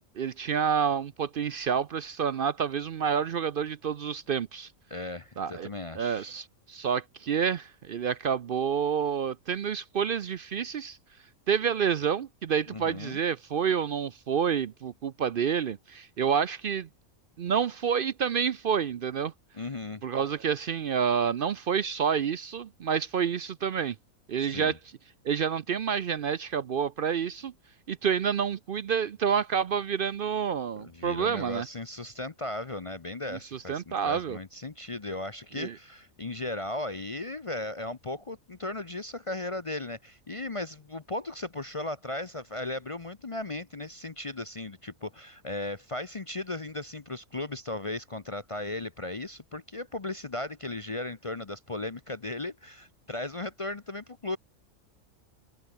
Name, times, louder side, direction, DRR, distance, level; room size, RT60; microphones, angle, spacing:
voice 1, 0.2-4.7 5.4-5.7 6.0-11.0 11.5-16.9 17.4-19.3 20.0-24.0 24.3-24.8 25.2-27.5 27.9-31.7 33.3-34.4 35.6-35.8, right 7 dB, 60° right, 0.6 m, -28 dB
voice 2, 4.9-6.3 12.7-13.2 19.5-20.0 24.4-24.8 30.8-54.4, left 2 dB, 30° left, 0.6 m, -36 dB
omnidirectional pair, 1.5 m